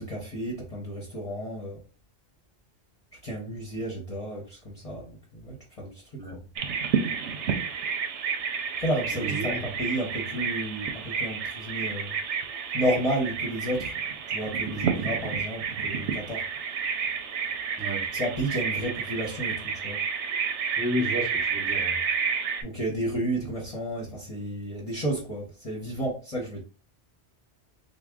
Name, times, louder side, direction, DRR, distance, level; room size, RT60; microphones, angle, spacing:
voice 1, 0.0-1.8 3.2-6.4 8.8-12.2 12.7-13.9 14.3-16.4 18.1-20.0 22.6-26.6, right 1 dB, 35° left, 1.0 m, -32 dB
Bird vocalization bird call bird song, 6.6-22.6, right 6 dB, 80° right, 0.9 m, -30 dB
voice 2, 9.2-9.6 17.8-18.0 20.8-22.0, equal, 10° right, 0.8 m, -31 dB
3.5 x 2.3 x 3.5 m
omnidirectional pair, 1.2 m